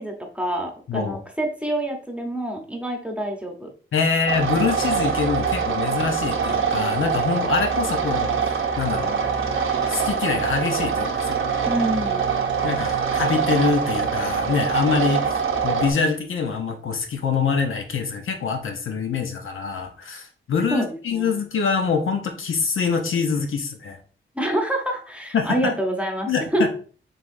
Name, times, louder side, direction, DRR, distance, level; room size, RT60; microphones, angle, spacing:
voice 1, 0.0-3.7 11.6-12.2 20.7-21.3 24.3-26.7, right 1 dB, 5° right, 2 dB, 0.9 m, -27 dB
voice 2, 3.9-8.5 8.8-9.3 9.9-11.4 12.6-15.4 15.6-24.0 25.3-25.8 26.3-26.7, left 5 dB, 75° left, 4 dB, 0.8 m, -25 dB
sound 1, 4.3-15.9, right 6 dB, 75° right, 0.8 m, -24 dB
5.5 x 3.5 x 2.6 m, 0.40 s
wide cardioid pair, 120°, 21 cm